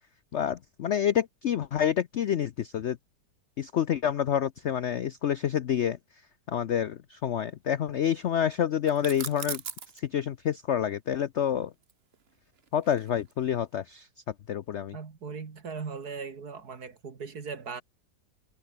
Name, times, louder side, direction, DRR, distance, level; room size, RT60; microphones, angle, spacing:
voice 1, 0.3-3.0 3.6-6.0 6.5-9.6 10.0-11.7 12.7-14.1 14.5-15.0, left 9 dB, 65° left, 0.7 m, -28 dB
sound 1, 8.9-10.0 11.8-13.4, right 7 dB, 40° right, 1.2 m, -39 dB
voice 2, 14.9-17.8, right 5 dB, 60° right, 2.7 m, -38 dB
omnidirectional pair, 1.9 m